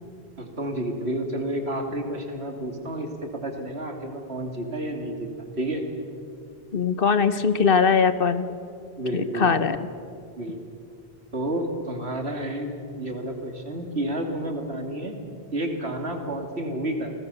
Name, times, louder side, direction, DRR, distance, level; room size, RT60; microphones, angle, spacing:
voice 1, 0.4-5.3 5.6-5.8 9.0-9.6 10.4-10.6 11.3-15.2 15.5-17.1, right 1 dB, 80° right, 4 dB, 3.0 m, -30 dB
voice 2, 6.7-8.5 9.1-9.8, left 5 dB, 60° left, 12 dB, 1.3 m, -21 dB
29.0 x 20.5 x 7.0 m, 2.4 s
omnidirectional pair, 1.1 m